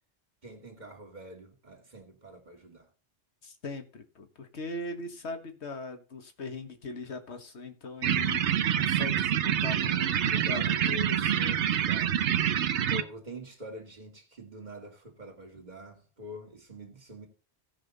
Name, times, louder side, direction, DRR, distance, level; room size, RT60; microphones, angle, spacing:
voice 1, 0.4-2.9 10.3-11.3 11.8-12.1 12.9-17.3, equal, 40° right, 2.2 m, -45 dB
voice 2, 3.4-11.8, left 2 dB, 75° left, 1.7 m, -40 dB
sound 1, 8.0-13.0, right 10 dB, 80° right, 1.0 m, -26 dB
16.5 x 5.7 x 4.0 m
omnidirectional pair, 1.1 m